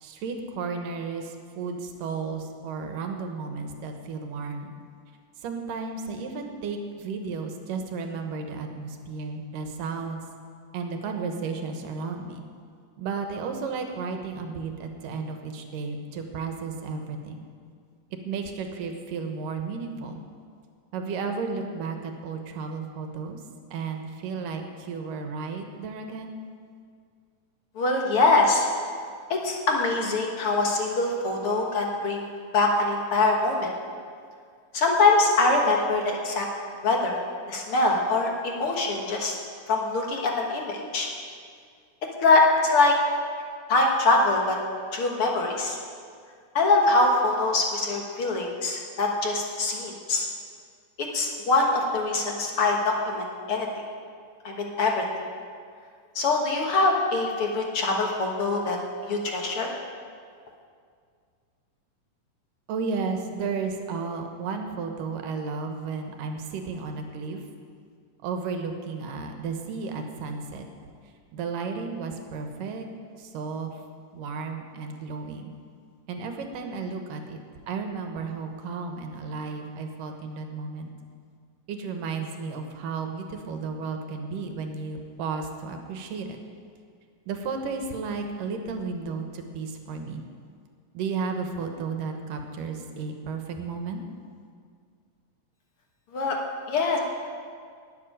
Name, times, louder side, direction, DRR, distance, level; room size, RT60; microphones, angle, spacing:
voice 1, 0.0-4.7 5.4-10.2 10.7-12.4 13.0-17.4 18.3-20.2 20.9-23.4 23.7-26.4 62.7-67.4 68.2-70.7 71.3-72.9 73.2-73.8 74.1-75.5 76.1-77.4 77.7-80.9 81.7-86.4 87.3-90.2 90.9-94.0, right 4 dB, 85° right, 5 dB, 2.8 m, -33 dB
voice 2, 27.8-28.7 29.3-33.7 34.7-36.5 36.8-37.2 37.5-39.4 39.7-41.1 42.2-42.9 43.7-44.6 44.9-45.8 46.6-50.3 51.0-53.7 54.4-55.0 56.2-58.8 59.0-59.7 96.1-96.4 96.7-97.0, left 3 dB, 55° left, 1 dB, 1.7 m, -23 dB
12.0 x 8.3 x 10.0 m, 2.2 s
omnidirectional pair, 3.8 m